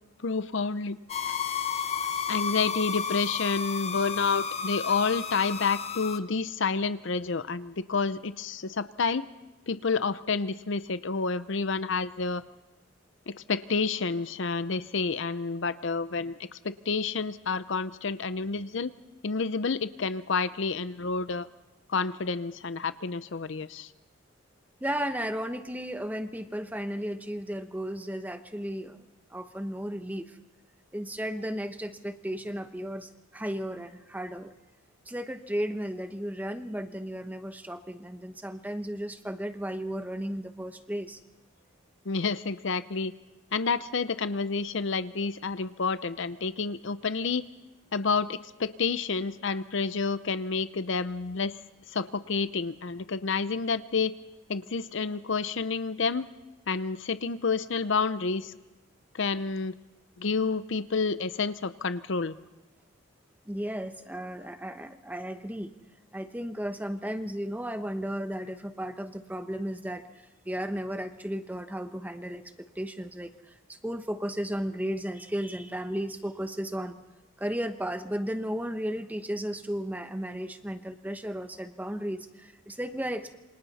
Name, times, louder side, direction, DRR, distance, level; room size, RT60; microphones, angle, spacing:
voice 1, 0.2-1.0 2.3-9.3 9.7-12.4 13.3-18.9 19.2-21.5 21.9-23.9 42.1-43.1 43.5-47.5 47.9-51.5 51.9-54.1 54.5-56.3 56.7-58.5 59.1-59.8 60.2-62.3, left 4 dB, 60° left, 14 dB, 0.7 m, -29 dB
sound 1, 1.1-6.2, left 6 dB, 30° left, 0.8 m, -32 dB
voice 2, 24.8-29.0 29.3-30.4 30.9-34.5 35.1-41.2 63.4-65.7 66.1-77.0 77.4-83.4, equal, 10° right, 8 dB, 0.9 m, -34 dB
28.0 x 26.0 x 4.2 m, 1.1 s
head